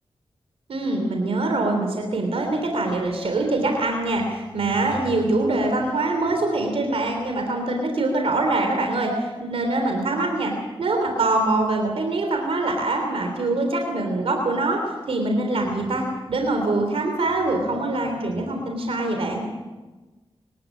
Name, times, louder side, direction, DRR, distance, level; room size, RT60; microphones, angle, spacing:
voice 1, 0.7-10.5 10.8-14.8 15.1-19.4, right 2 dB, 90° right, 3 dB, 3.4 m, -24 dB
25.0 x 13.0 x 8.5 m, 1.2 s
cardioid pair, 60°, 10 cm